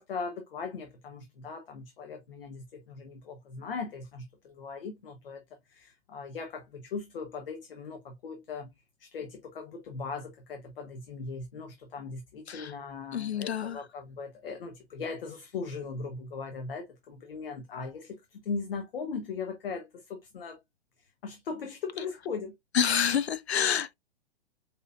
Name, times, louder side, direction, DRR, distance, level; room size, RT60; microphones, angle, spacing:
voice 1, 0.0-5.4 5.7-8.7 9.0-20.6 21.0-22.5, left 4 dB, 60° left, 1.0 m, -39 dB
voice 2, 13.1-13.8 22.7-23.9, left 8 dB, 80° left, 0.6 m, -28 dB
4.8 x 4.3 x 2.4 m
figure-of-eight pair, 115°, 32 cm